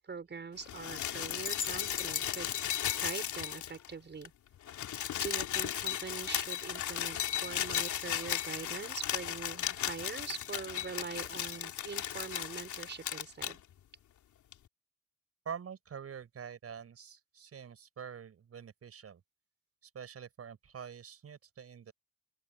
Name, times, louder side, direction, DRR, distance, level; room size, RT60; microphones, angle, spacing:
voice 1, 0.0-2.5 3.0-4.3 5.2-13.6, right 5 dB, 35° right, 6.3 m, -43 dB
sound 1, 0.6-3.9 4.2-4.3 4.5-13.5 14.5-14.6, left 10 dB, 70° left, 3.6 m, -35 dB
voice 2, 15.4-19.2 19.8-21.9, right 7 dB, 50° right, 5.9 m, -46 dB
open air
cardioid pair, 90°, 30 cm